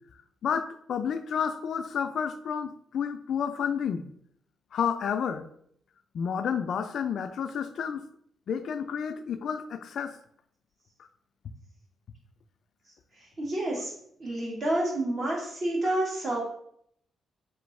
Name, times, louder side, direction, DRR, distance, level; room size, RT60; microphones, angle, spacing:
voice 1, 0.4-4.0 4.7-5.5 6.1-8.1 8.5-10.2, left 7 dB, 70° left, 9 dB, 0.3 m, -30 dB
voice 2, 13.2-13.9 14.2-16.4, right 1 dB, 50° right, -3 dB, 1.6 m, -29 dB
4.2 x 3.0 x 3.1 m, 0.68 s
cardioid pair, 95°, 0 cm